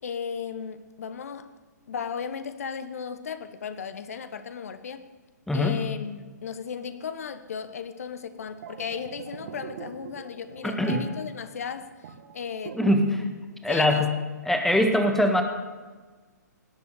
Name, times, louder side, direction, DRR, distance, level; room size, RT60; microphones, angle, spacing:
voice 1, 0.0-1.5 1.9-5.0 5.5-12.8 13.7-14.1, left 7 dB, 55° left, 11 dB, 1.1 m, -35 dB
voice 2, 5.5-5.8 10.6-11.1 12.7-13.3 13.6-14.1 14.4-15.4, left 1 dB, 5° left, 5 dB, 1.6 m, -22 dB
sound 1, 8.3-13.3 13.5-13.8, right 6 dB, 45° right, 1.5 m, -40 dB
18.5 x 7.8 x 9.7 m, 1.3 s
figure-of-eight pair, 120°, 10 cm